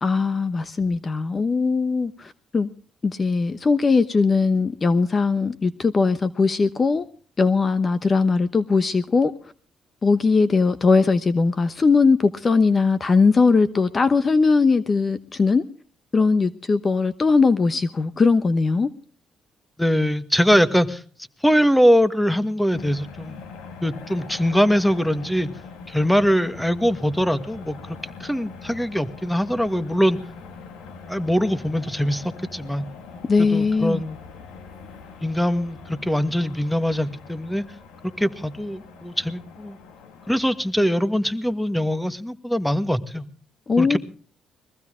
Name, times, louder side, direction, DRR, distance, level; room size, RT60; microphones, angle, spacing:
voice 1, 0.0-2.7 3.0-7.1 7.4-9.3 10.0-15.6 16.1-18.9 33.3-34.0 43.7-44.0, left 4 dB, 35° left, 0.9 m, -20 dB
voice 2, 19.8-21.0 21.4-23.4 23.8-25.5 25.9-30.2 31.1-32.9 33.4-34.2 35.2-37.6 38.2-39.8 40.3-43.3 43.8-44.0, equal, 5° left, 1.5 m, -22 dB
sound 1, 22.7-40.7, left 5 dB, 85° left, 2.0 m, -42 dB
22.5 x 15.0 x 3.7 m
cardioid pair, 75°, 0 cm